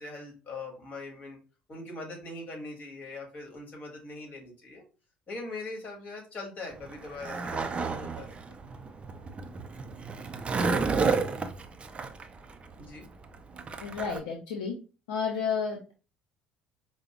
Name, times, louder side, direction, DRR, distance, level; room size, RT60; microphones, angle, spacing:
voice 1, 0.0-1.4 1.7-4.8 5.3-8.3 12.8-13.0, left 2 dB, 40° left, 1 dB, 1.6 m, -41 dB
Skateboard, 6.7-14.2, right 4 dB, 25° right, 0.5 m, -31 dB
voice 2, 13.8-14.7 15.1-15.9, left 6 dB, 70° left, 1 dB, 0.5 m, -31 dB
4.9 x 2.0 x 2.9 m, 0.34 s
figure-of-eight pair, 60°, 4 cm